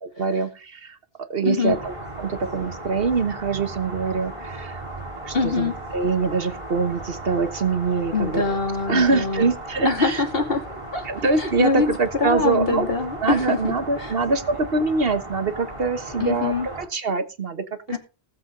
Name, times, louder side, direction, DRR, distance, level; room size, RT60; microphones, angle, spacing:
voice 1, 0.0-1.0 1.3-4.8 5.2-8.4 8.9-10.2 11.0-12.9 13.2-18.0, right 4 dB, 65° right, 10 dB, 1.5 m, -24 dB
voice 2, 1.4-1.7 5.3-5.7 8.1-9.5 9.8-11.1 11.4-11.9 12.2-14.1 16.2-16.7 17.9-18.0, left 3 dB, 65° left, 5 dB, 2.8 m, -24 dB
sound 1, 1.6-16.9, right 1 dB, 30° right, 4.3 m, -36 dB
19.0 x 7.5 x 3.9 m, 0.32 s
omnidirectional pair, 1.0 m